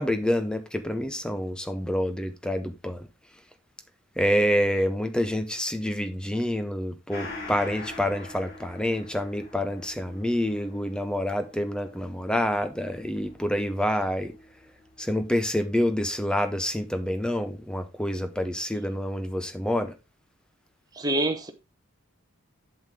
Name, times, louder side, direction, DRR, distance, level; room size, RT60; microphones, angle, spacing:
voice 1, 0.0-3.1 4.2-14.3 15.0-19.9, equal, 5° left, 0.7 m, -27 dB
Gong, 7.1-16.1 16.4-16.5, left 2 dB, 50° left, 4.5 m, -44 dB
voice 2, 20.9-21.5, right 2 dB, 20° right, 1.0 m, -26 dB
7.9 x 6.9 x 3.7 m
head